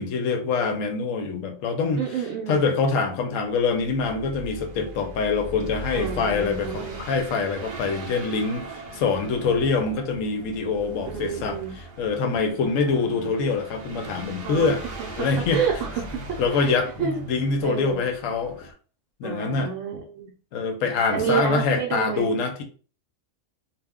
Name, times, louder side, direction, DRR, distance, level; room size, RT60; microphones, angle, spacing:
voice 1, 0.0-2.1 2.5-14.8 15.2-15.6 16.4-18.7 19.2-19.7 20.5-22.6, left 4 dB, 75° left, 0.9 m, -25 dB
voice 2, 2.0-2.7 5.9-7.1 11.1-11.7 12.6-13.0 14.4-14.7 15.0-16.0 16.5-17.2 17.6-18.0 19.2-20.3 21.1-22.3, right 7 dB, 70° right, 0.9 m, -29 dB
sound 1, 3.5-18.7, right 1 dB, 45° right, 0.5 m, -40 dB
2.4 x 2.1 x 3.5 m
omnidirectional pair, 1.4 m